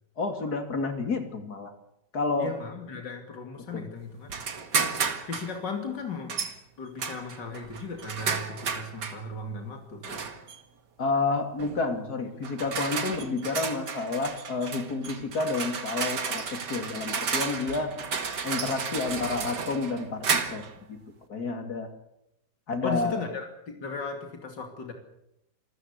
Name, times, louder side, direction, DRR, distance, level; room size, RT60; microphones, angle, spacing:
voice 1, 0.2-1.7 2.1-2.5 3.7-3.8 11.0-17.9 18.4-20.6 20.9-21.0 21.3-21.9 22.7-23.2, left 3 dB, 60° left, 7 dB, 3.2 m, -30 dB
voice 2, 2.4-4.6 5.3-6.5 6.8-10.2 22.8-24.9, left 4 dB, 85° left, 4 dB, 3.3 m, -36 dB
sound 1, 4.3-5.5 6.3-6.6 7.0-9.2 10.0-10.6 11.6-11.8 12.4-20.8, right 5 dB, 75° right, 2.5 m, -32 dB
26.5 x 14.0 x 8.3 m, 0.83 s
omnidirectional pair, 1.8 m